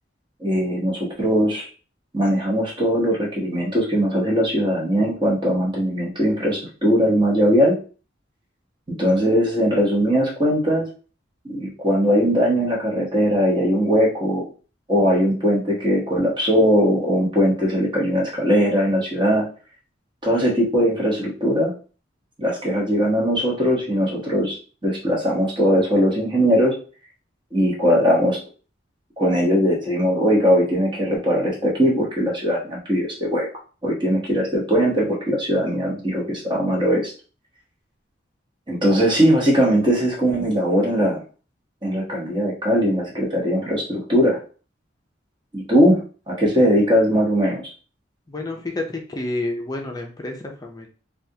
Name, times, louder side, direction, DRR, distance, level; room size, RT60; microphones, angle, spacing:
voice 1, 0.4-1.7 2.1-7.8 8.9-10.9 11.5-14.5 14.9-19.4 20.2-21.7 22.4-24.6 24.8-26.8 27.5-28.4 29.2-33.5 33.8-37.1 38.7-41.2 41.8-44.4 45.5-46.0 46.3-47.6, equal, 25° right, -3 dB, 1.0 m, -20 dB
voice 2, 48.3-50.9, left 2 dB, 20° left, 2 dB, 0.6 m, -29 dB
3.4 x 2.4 x 2.8 m, 0.37 s
head